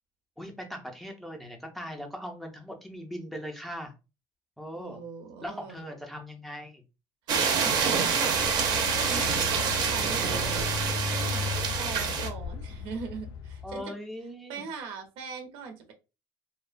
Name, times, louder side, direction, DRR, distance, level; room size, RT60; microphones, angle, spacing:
voice 1, 0.4-3.9 4.6-5.0 5.4-6.8 13.6-14.6, equal, ahead, 2 dB, 0.4 m, -40 dB
voice 2, 4.7-5.8 7.3-8.7 9.0-10.3 10.8-13.9 14.5-15.9, right 5 dB, 85° right, 5 dB, 0.7 m, -41 dB
sound 1, 7.3-12.3, right 6 dB, 50° right, 0.5 m, -27 dB
sound 2, 8.3-13.8, left 4 dB, 70° left, 0.4 m, -35 dB
2.6 x 2.1 x 2.4 m, 0.29 s
cardioid pair, 165°, 9 cm